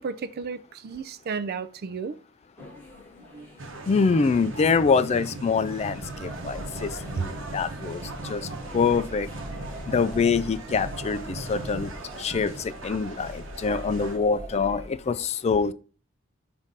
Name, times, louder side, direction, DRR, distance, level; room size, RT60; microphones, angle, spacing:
voice 1, 0.0-2.2 3.3-3.5 7.2-7.3, right 5 dB, 50° right, 0.4 m, -33 dB
sound 1, 2.6-12.3, left 2 dB, 10° left, 1.8 m, -49 dB
sound 2, 3.6-14.2, right 2 dB, 65° right, 1.0 m, -38 dB
voice 2, 3.9-9.3 9.9-11.9 12.2-15.7, left 5 dB, 30° left, 0.3 m, -25 dB
sound 3, 5.7-14.9, equal, 20° right, 0.8 m, -42 dB
7.1 x 2.7 x 5.3 m
head